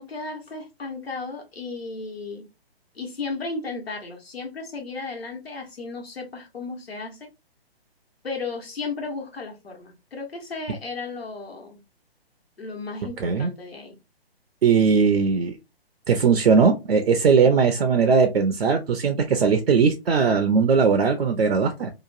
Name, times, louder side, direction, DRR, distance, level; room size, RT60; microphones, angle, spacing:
voice 1, 0.0-2.5 2.9-7.3 8.2-11.8 12.6-14.0, left 3 dB, 70° left, 1.2 m, -34 dB
voice 2, 14.6-15.6 16.1-21.9, right 5 dB, 70° right, 0.5 m, -19 dB
2.9 x 2.2 x 2.5 m
figure-of-eight pair, 135°, 31 cm